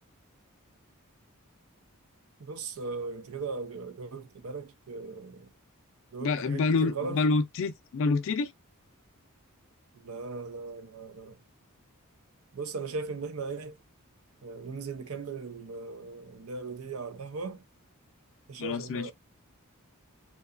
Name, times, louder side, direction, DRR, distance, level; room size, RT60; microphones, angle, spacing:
voice 1, 2.4-5.5 6.1-7.2 9.9-11.4 12.5-13.8 14.4-17.6 18.5-19.1, right 4 dB, 70° right, 0.6 m, -38 dB
voice 2, 6.2-8.5 18.6-19.1, left 4 dB, 60° left, 0.4 m, -27 dB
2.7 x 2.3 x 2.4 m
head